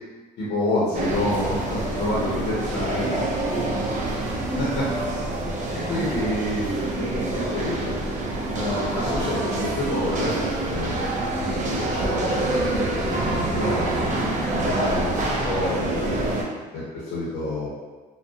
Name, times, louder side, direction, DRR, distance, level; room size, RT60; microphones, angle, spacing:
voice 1, 0.4-3.3 4.6-4.9 5.8-8.0 8.5-10.4 10.7-16.2 16.7-17.7, left 1 dB, 85° left, -8 dB, 0.7 m, -28 dB
sound 1, 0.9-16.4, right 2 dB, 45° right, 0.5 m, -26 dB
2.3 x 2.1 x 2.6 m, 1.3 s
cardioid pair, 110°, 17 cm